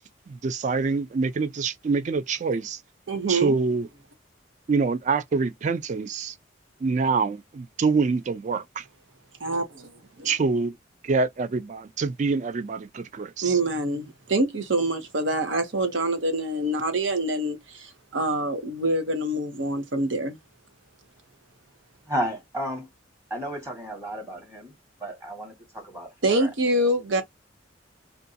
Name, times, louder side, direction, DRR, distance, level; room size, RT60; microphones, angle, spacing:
voice 1, 0.3-2.8 3.3-3.9 4.7-6.4 6.8-8.9 10.2-10.8 11.0-13.6, right 4 dB, 40° right, 0.3 m, -25 dB
voice 2, 3.1-3.6 9.4-9.9 10.2-10.3 13.4-20.4 26.2-27.2, right 1 dB, 85° right, 0.8 m, -25 dB
voice 3, 22.1-22.9 23.3-24.7 25.0-26.5, equal, 15° right, 1.2 m, -33 dB
2.5 x 2.2 x 2.6 m
head